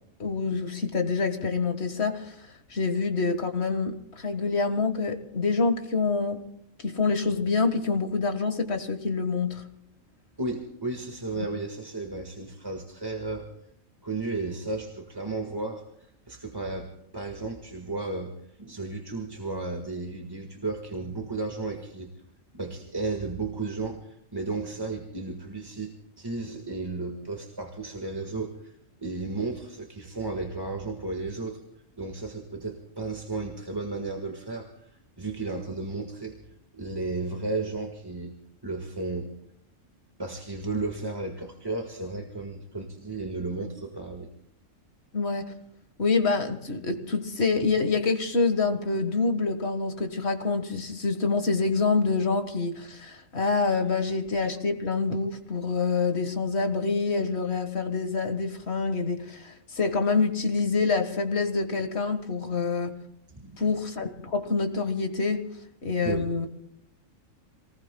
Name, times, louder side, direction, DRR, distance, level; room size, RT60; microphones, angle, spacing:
voice 1, 0.2-2.3 2.7-6.5 6.8-9.6 45.1-45.5 46.0-63.0 63.6-65.5 65.8-66.5, left 4 dB, 55° left, 1.8 m, -26 dB
voice 2, 10.4-13.5 14.0-18.3 18.6-22.1 22.5-28.7 29.0-31.6 32.0-34.9 35.2-36.4 36.7-38.3 38.6-39.3 40.2-44.3 63.3-63.6 66.0-66.3, right 3 dB, 20° right, 1.6 m, -34 dB
27.0 x 19.5 x 2.2 m
omnidirectional pair, 1.3 m